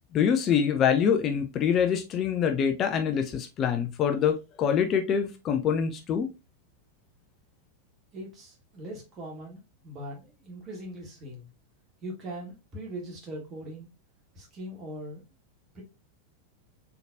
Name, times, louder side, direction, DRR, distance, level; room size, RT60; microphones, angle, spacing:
voice 1, 0.1-6.3, left 7 dB, 30° left, 5 dB, 0.5 m, -25 dB
voice 2, 8.1-11.5 12.0-13.9 14.3-15.2 15.7-15.8, right 1 dB, 30° right, 0 dB, 1.7 m, -41 dB
4.0 x 3.3 x 2.6 m, 0.26 s
figure-of-eight pair, 90°, 0 cm